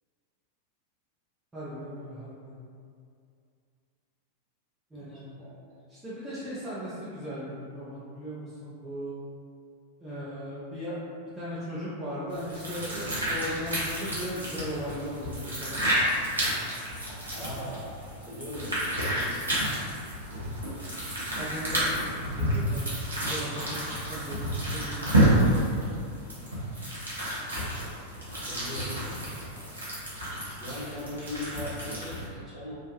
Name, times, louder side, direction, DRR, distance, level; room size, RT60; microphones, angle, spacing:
voice 1, 1.5-2.6 4.9-5.4 5.9-9.2 10.0-11.0 11.4-15.8 21.4-22.9 23.3-23.8 24.1-25.4, equal, 10° right, -12 dB, 0.6 m, -37 dB
voice 2, 4.9-5.5 17.3-17.9 18.2-19.1 21.6-22.2 28.5-29.7 30.6-32.8, left 1 dB, 15° left, -11 dB, 1.4 m, -40 dB
sound 1, 12.3-32.3, right 1 dB, 80° right, 0.8 m, -30 dB
3.1 x 2.1 x 2.9 m, 2.4 s
figure-of-eight pair, 90°, 0 cm